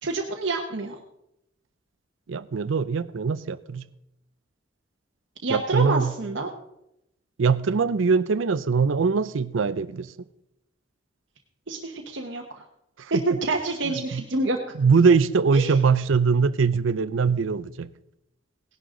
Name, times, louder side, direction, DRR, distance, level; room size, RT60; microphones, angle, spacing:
voice 1, 0.0-0.9 5.4-6.5 11.7-12.6 13.1-14.6 15.5-15.7, right 2 dB, 70° right, 1.1 m, -27 dB
voice 2, 2.3-3.8 5.5-6.1 7.4-10.1 13.1-13.2 13.9-14.2 14.8-17.9, right 5 dB, 90° right, 0.5 m, -22 dB
17.5 x 11.0 x 3.8 m
head